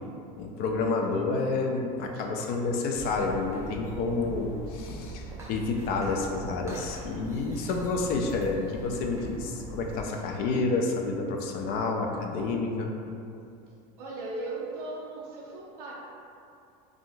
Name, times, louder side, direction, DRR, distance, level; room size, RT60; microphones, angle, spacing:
voice 1, 0.4-12.9, left 3 dB, 55° left, 2 dB, 0.4 m, -29 dB
sound 1, 2.9-10.0, right 1 dB, 15° right, 0.7 m, -42 dB
voice 2, 14.0-15.9, right 2 dB, 90° right, -4 dB, 0.5 m, -38 dB
3.5 x 2.3 x 2.5 m, 2.6 s
supercardioid pair, 110°, 19 cm